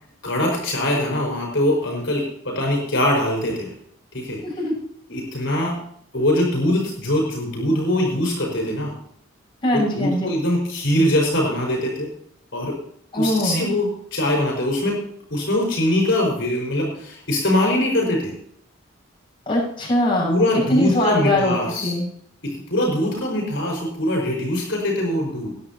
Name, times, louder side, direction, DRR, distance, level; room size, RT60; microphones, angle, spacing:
voice 1, 0.2-3.7 4.1-4.4 5.1-5.8 6.1-8.9 9.7-12.1 12.5-12.8 13.2-18.4 20.2-21.9 22.4-25.5, left 1 dB, 60° left, -1 dB, 5.1 m, -22 dB
voice 2, 4.4-4.7 9.6-10.3 13.1-13.7 19.5-21.5 21.8-22.1, left 1 dB, 25° left, -4 dB, 6.4 m, -21 dB
19.5 x 11.0 x 2.9 m, 0.66 s
head